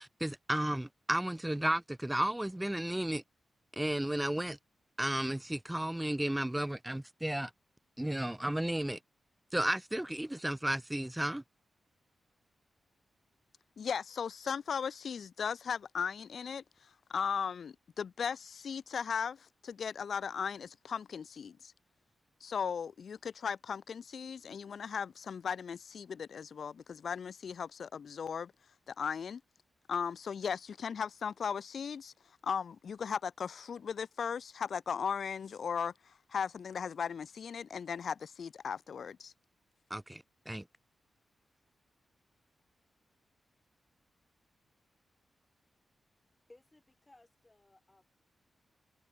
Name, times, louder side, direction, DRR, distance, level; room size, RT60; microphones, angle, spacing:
voice 1, 0.0-3.2 3.7-4.6 5.0-7.5 8.0-9.0 9.5-11.4 39.9-40.6, right 1 dB, 5° right, 0.4 m, -33 dB
voice 2, 13.8-16.6 17.1-21.7 22.4-28.5 28.9-29.4 29.9-32.1 32.4-39.3, left 6 dB, 60° left, 0.4 m, -37 dB
voice 3, 46.5-48.1, left 2 dB, 15° left, 7.1 m, -62 dB
wide cardioid pair, 150°, 0 cm